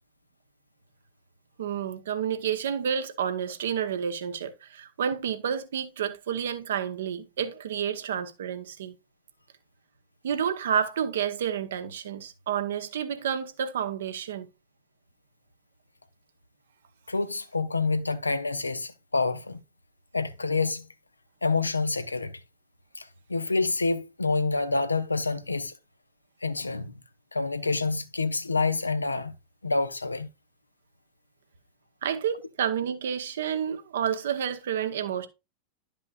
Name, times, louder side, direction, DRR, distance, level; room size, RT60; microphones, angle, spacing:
voice 1, 1.6-8.9 10.2-14.5 32.0-35.3, right 8 dB, 60° right, 1.0 m, -30 dB
voice 2, 17.1-19.6 20.1-20.9 21.4-22.3 23.0-25.7 26.4-26.9 27.3-29.3 29.6-30.3, left 3 dB, 80° left, 0.7 m, -27 dB
11.5 x 5.4 x 2.4 m
figure-of-eight pair, 90°, 0 cm